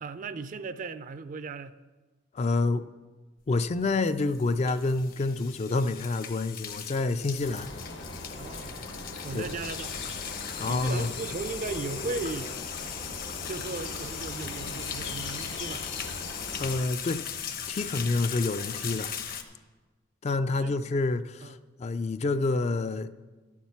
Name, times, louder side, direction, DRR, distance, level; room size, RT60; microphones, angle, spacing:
voice 1, 0.0-1.8 8.4-8.9 9.2-10.0 10.5-12.6 13.5-15.9 20.5-20.9 21.4-21.6, right 4 dB, 45° right, 0.4 m, -37 dB
voice 2, 2.3-2.9 3.5-7.7 9.3-9.5 10.6-11.1 16.6-17.2 17.7-19.1 20.2-23.1, left 3 dB, 35° left, 0.3 m, -28 dB
sound 1, 3.7-19.4, left 8 dB, 50° left, 0.9 m, -39 dB
sound 2, 7.4-16.8, left 2 dB, 70° left, 1.2 m, -40 dB
12.0 x 7.3 x 5.8 m
head